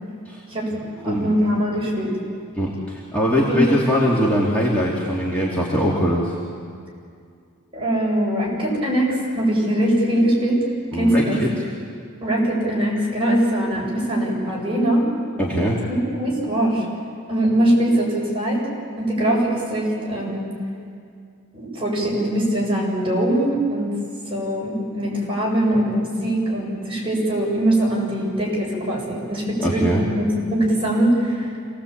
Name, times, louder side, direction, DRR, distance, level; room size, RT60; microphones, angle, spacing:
voice 1, 1.0-2.1 3.5-3.7 7.7-10.6 10.9-11.4 12.2-15.1 15.9-16.8 17.3-18.6 19.0-20.5 21.5-24.0 24.3-30.2 30.5-31.5, right 1 dB, 25° right, -4 dB, 7.2 m, -21 dB
voice 2, 2.6-6.3 10.9-11.6 15.4-15.8 29.6-30.0, equal, 5° left, -6 dB, 2.7 m, -21 dB
27.0 x 18.5 x 8.8 m, 2.3 s
head